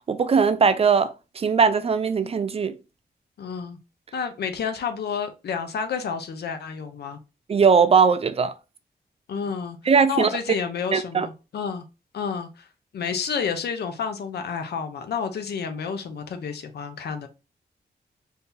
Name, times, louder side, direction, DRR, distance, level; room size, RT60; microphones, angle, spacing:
voice 1, 0.1-2.8 7.5-8.5 9.9-10.3 10.9-11.3, right 5 dB, 35° right, 0.4 m, -20 dB
voice 2, 3.4-3.8 4.1-7.2 9.3-9.8 10.1-11.9 12.1-12.7 12.9-17.3, left 6 dB, 80° left, 0.6 m, -30 dB
2.8 x 2.7 x 3.6 m
wide cardioid pair, 100°, 17 cm